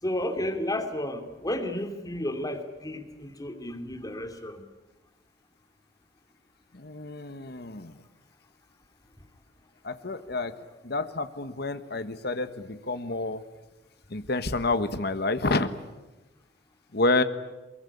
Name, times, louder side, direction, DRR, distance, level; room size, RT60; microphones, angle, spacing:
voice 1, 0.0-4.6, left 1 dB, 20° left, 6 dB, 2.8 m, -32 dB
voice 2, 6.7-8.0 9.8-10.5 10.8-13.4 14.1-15.7 16.9-17.2, left 2 dB, 65° left, 10 dB, 1.4 m, -29 dB
24.0 x 22.5 x 10.0 m, 1.1 s
head